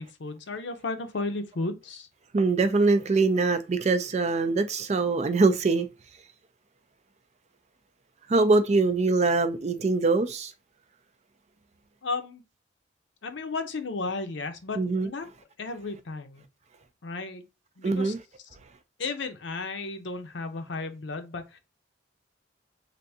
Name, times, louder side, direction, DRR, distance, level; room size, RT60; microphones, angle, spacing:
voice 1, 0.0-2.1 12.0-12.4 13.2-15.3 15.6-16.4 17.0-17.4 17.8-18.1 19.0-21.6, left 3 dB, 70° left, 0.7 m, -34 dB
voice 2, 2.3-5.9 8.3-10.5 14.8-15.1 17.8-18.2, right 3 dB, 35° right, 0.4 m, -23 dB
3.4 x 2.6 x 2.6 m
head